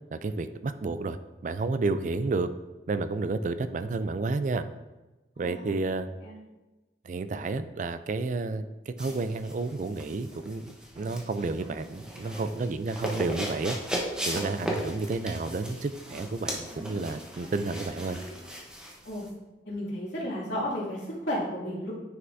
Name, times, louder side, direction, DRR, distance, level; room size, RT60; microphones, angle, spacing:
voice 1, 0.1-1.2 1.4-2.5 2.9-4.7 5.4-6.1 7.0-13.8 14.3-18.2, right 3 dB, 45° right, 11 dB, 0.4 m, -31 dB
voice 2, 5.4-5.7 6.2-6.4 19.0-19.3 19.7-21.9, equal, 85° left, -6 dB, 2.4 m, -33 dB
sound 1, 8.4-8.6 9.0-9.3 9.7-9.9 10.3-10.5 11.0-11.2 11.6-11.9 12.2-12.5 12.9-13.1 13.5-13.9 14.1-14.5 14.8-15.2 15.4-15.8 16.1-18.4, equal, 30° right, 1.9 m, -49 dB
sound 2, 9.0-19.3, equal, 5° right, 0.9 m, -37 dB
9.5 x 5.5 x 2.7 m, 1.1 s
head